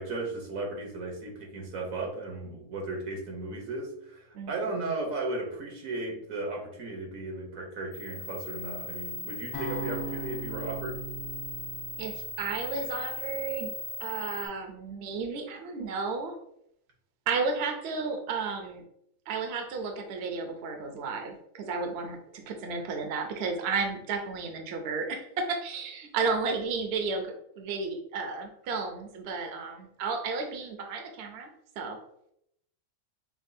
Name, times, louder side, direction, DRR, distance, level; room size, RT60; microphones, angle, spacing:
voice 1, 0.0-11.0, right 2 dB, 85° right, 0 dB, 1.4 m, -35 dB
voice 2, 4.3-4.7 12.0-13.7 14.0-16.3 17.3-18.8 19.3-31.5 31.8-32.0, right 4 dB, 60° right, 4 dB, 0.8 m, -33 dB
sound 1, 7.9-14.5, left 3 dB, 50° left, 0.6 m, -39 dB
sound 2, 9.5-13.7, right 3 dB, 90° left, 1.4 m, -40 dB
5.9 x 2.3 x 2.6 m, 0.74 s
omnidirectional pair, 1.4 m